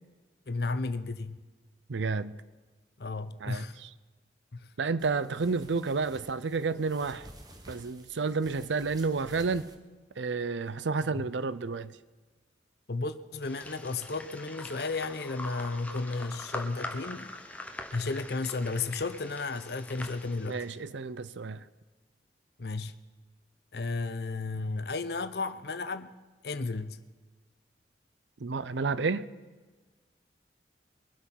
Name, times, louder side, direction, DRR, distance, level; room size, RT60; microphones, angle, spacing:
voice 1, 0.5-1.4 3.0-3.8 4.5-4.7 11.1-11.3 12.9-17.3 17.9-20.6 22.6-23.0 23.7-26.2 26.4-27.0, left 3 dB, 60° left, 0.7 m, -33 dB
voice 2, 1.9-2.4 3.4-3.9 4.8-7.3 7.7-9.7 10.2-11.9 20.5-21.6 28.4-29.3, right 4 dB, 85° right, 0.6 m, -30 dB
sound 1, 5.0-9.8, right 1 dB, 20° right, 1.1 m, -52 dB
sound 2, 13.4-20.7, left 1 dB, 10° left, 0.8 m, -43 dB
22.5 x 8.1 x 5.8 m
head